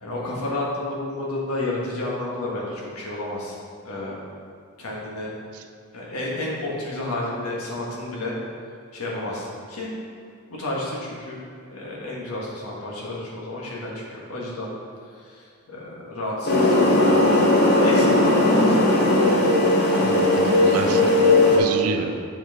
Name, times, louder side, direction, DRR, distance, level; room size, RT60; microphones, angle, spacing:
voice 1, 0.0-3.6 3.8-4.2 4.8-5.3 5.9-8.3 8.9-9.9 10.5-11.4 11.7-14.7 15.1-19.2 21.7-22.2, left 2 dB, 85° left, -4 dB, 1.4 m, -31 dB
sound 1, 16.5-21.6, left 2 dB, 50° left, 1.0 m, -17 dB
voice 2, 20.0-22.1, right 5 dB, 75° right, 6 dB, 0.5 m, -30 dB
6.4 x 6.1 x 3.6 m, 2.1 s
head